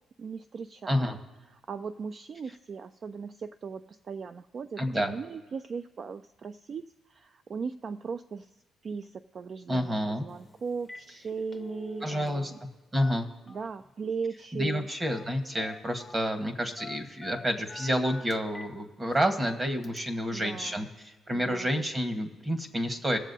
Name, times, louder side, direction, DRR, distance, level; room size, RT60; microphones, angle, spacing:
voice 1, 0.2-1.2 1.5-6.8 7.1-8.6 8.8-12.6 13.5-14.9 20.3-20.9 21.3-21.8, right 5 dB, 45° right, 10 dB, 0.3 m, -38 dB
voice 2, 0.9-1.2 4.8-5.1 9.7-10.3 12.0-12.5 12.9-13.3 14.5-23.2, equal, 25° right, 6 dB, 1.2 m, -29 dB
Telephone, 10.3-10.4 10.7-11.1 11.4-12.7 12.9-13.9 15.0-15.3 15.5-16.2 16.8-18.7 19.1-19.2 19.8-20.0, left 3 dB, 20° left, 0.6 m, -45 dB
21.5 x 7.3 x 2.7 m, 1.2 s
cardioid pair, 90°, 0 cm